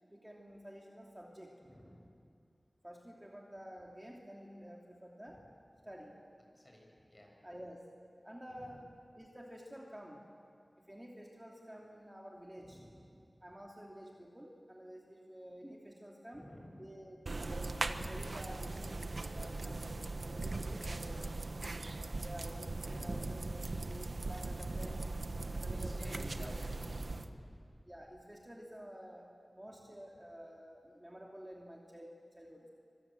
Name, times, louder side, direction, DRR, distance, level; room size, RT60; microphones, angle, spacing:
voice 1, 0.1-1.5 2.8-5.4 5.8-6.2 7.4-7.9 8.2-8.8 9.2-10.2 10.8-12.8 13.4-16.4 16.8-20.0 20.2-21.3 22.2-23.6 23.9-25.0 25.5-26.5 27.9-29.3 29.5-32.1 32.4-32.7, equal, 15° right, -2 dB, 2.9 m, -50 dB
voice 2, 1.6-2.1 5.3-5.4 6.5-7.3 8.6-8.7 12.6-13.2 16.3-17.0 19.4-19.9 22.8-23.4 24.8-25.0 25.7-27.6, equal, 25° left, -1 dB, 7.8 m, -54 dB
sound 1, 17.3-27.3, right 2 dB, 65° right, 1.2 m, -39 dB
28.0 x 25.5 x 7.8 m, 2.4 s
wide cardioid pair, 70°, 0 cm